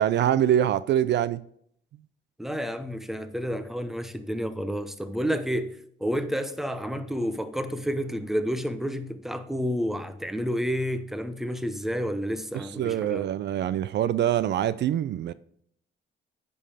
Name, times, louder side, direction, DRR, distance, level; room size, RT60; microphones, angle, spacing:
voice 1, 0.0-1.4 12.5-15.3, right 11 dB, 60° right, 0.4 m, -24 dB
voice 2, 2.4-13.3, equal, ahead, 0.8 m, -30 dB
9.8 x 5.4 x 4.9 m
cardioid pair, 90°, 20 cm